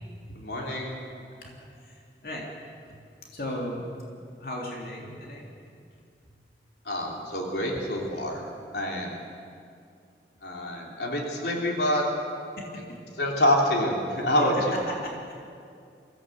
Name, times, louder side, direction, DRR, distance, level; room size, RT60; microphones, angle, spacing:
voice 1, 0.3-0.9 6.8-8.5 8.7-9.1 10.4-12.1 13.2-14.5, left 1 dB, 75° left, -1 dB, 3.4 m, -26 dB
voice 2, 1.4-2.5 2.9-3.0 3.3-3.9 4.4-5.5 12.6-13.0 14.4-15.3, left 1 dB, 55° left, -2 dB, 3.3 m, -37 dB
23.5 x 16.5 x 8.1 m, 2.4 s
head